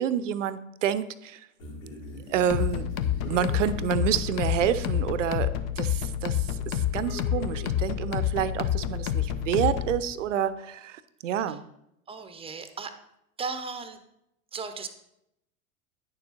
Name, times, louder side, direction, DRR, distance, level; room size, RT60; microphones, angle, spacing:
voice 1, 0.0-1.5 2.3-3.0 3.2-11.6, right 9 dB, 65° right, 14 dB, 0.7 m, -28 dB
sound 1, 1.6-5.3, left 1 dB, 65° left, 2.8 m, -44 dB
sound 2, 2.5-10.0, left 11 dB, 35° left, 0.7 m, -28 dB
voice 2, 12.1-13.0 13.4-14.0 14.5-14.9, right 5 dB, 15° right, 10 dB, 0.8 m, -36 dB
9.7 x 6.9 x 4.1 m, 0.82 s
figure-of-eight pair, 80°, 41 cm